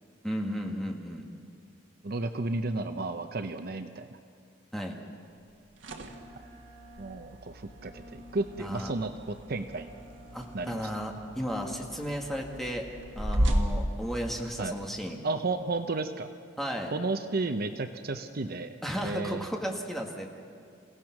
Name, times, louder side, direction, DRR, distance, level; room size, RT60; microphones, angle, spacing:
voice 1, 0.2-1.3 4.7-5.0 8.6-8.9 10.3-12.8 13.2-15.2 16.6-16.9 18.8-20.3, equal, ahead, 0 dB, 2.0 m, -34 dB
voice 2, 2.0-4.1 6.4-6.5 7.0-9.9 10.5-10.9 14.6-14.7 15.2-16.3 16.9-18.8 19.0-19.5, right 3 dB, 55° right, 8 dB, 0.7 m, -33 dB
sound 1, 5.5-14.9, equal, 75° right, 1.7 m, -35 dB
Wind instrument woodwind instrument, 6.0-12.8, left 1 dB, 25° right, 6.8 m, -54 dB
28.5 x 17.0 x 6.0 m, 2.4 s
head